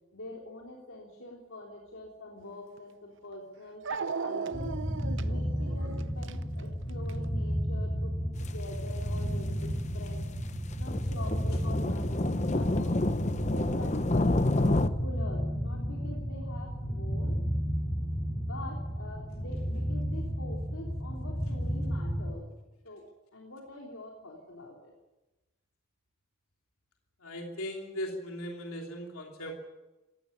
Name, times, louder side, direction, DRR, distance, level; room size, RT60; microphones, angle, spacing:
voice 1, 0.1-3.8 4.2-4.8 5.2-10.3 10.8-13.0 13.4-17.4 17.8-18.1 18.5-22.5 22.8-23.0 23.3-24.9, left 1 dB, 70° left, -1 dB, 3.4 m, -45 dB
Dog, 2.8-2.9 3.9-7.3, right 5 dB, 60° right, 0.6 m, -37 dB
sound 1, 4.5-22.3, equal, 50° left, 5.6 m, -33 dB
sound 2, 8.4-8.5 9.1-9.2 9.7-9.8 10.4-14.9, left 2 dB, 35° left, 0.7 m, -28 dB
voice 2, 27.2-29.6, equal, 85° left, 1 dB, 3.0 m, -38 dB
17.5 x 16.0 x 9.9 m, 1.1 s
head